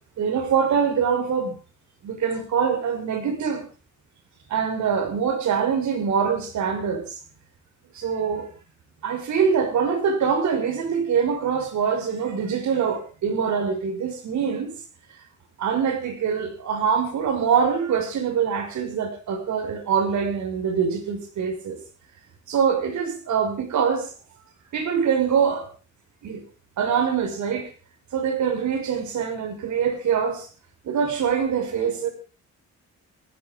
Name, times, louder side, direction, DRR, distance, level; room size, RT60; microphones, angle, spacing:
voice 1, 0.2-1.6 2.0-3.6 4.5-7.2 7.9-8.5 9.0-14.7 15.6-21.8 22.5-24.1 24.7-25.7 26.2-26.4 26.8-27.7 28.1-30.5 30.8-32.1, right 6 dB, 75° right, 6 dB, 6.0 m, -24 dB
19.5 x 15.5 x 3.7 m, 0.36 s
wide cardioid pair, 160°, 29 cm